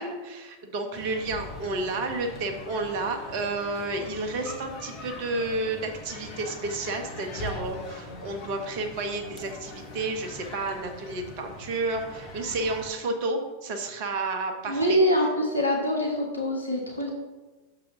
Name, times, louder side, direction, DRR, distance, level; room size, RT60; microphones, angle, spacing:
voice 1, 0.0-15.0, right 2 dB, 45° right, 4 dB, 1.0 m, -31 dB
sound 1, 0.9-12.9, left 2 dB, 40° left, 1.1 m, -42 dB
voice 2, 14.7-17.1, equal, 80° left, 0 dB, 1.3 m, -24 dB
6.6 x 4.0 x 5.8 m, 1.2 s
figure-of-eight pair, 90°, 0 cm